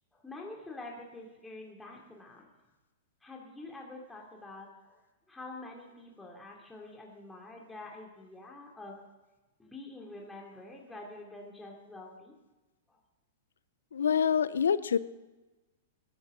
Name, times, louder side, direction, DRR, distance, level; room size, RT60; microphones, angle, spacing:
voice 1, 0.1-2.5 3.2-5.0 5.3-8.9 9.6-12.3 12.9-13.0, left 2 dB, 10° left, -2 dB, 2.9 m, -46 dB
voice 2, 13.9-15.0, left 7 dB, 75° left, 16 dB, 0.7 m, -26 dB
21.0 x 11.5 x 4.0 m, 1.1 s
figure-of-eight pair, 105°, 0 cm